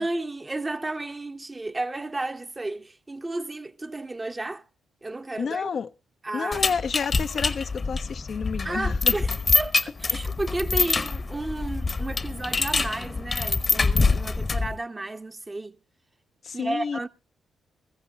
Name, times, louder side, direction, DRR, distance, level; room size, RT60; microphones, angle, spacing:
voice 1, 0.0-4.6 5.0-5.7 6.2-6.6 8.6-15.8 16.5-17.1, right 2 dB, 25° right, 0.9 m, -33 dB
voice 2, 5.4-5.9 6.3-9.2 16.4-17.1, left 6 dB, 55° left, 0.6 m, -30 dB
sound 1, 6.5-14.8, left 4 dB, 40° left, 1.0 m, -25 dB
21.0 x 14.5 x 2.2 m
hypercardioid pair, 45°, 0 cm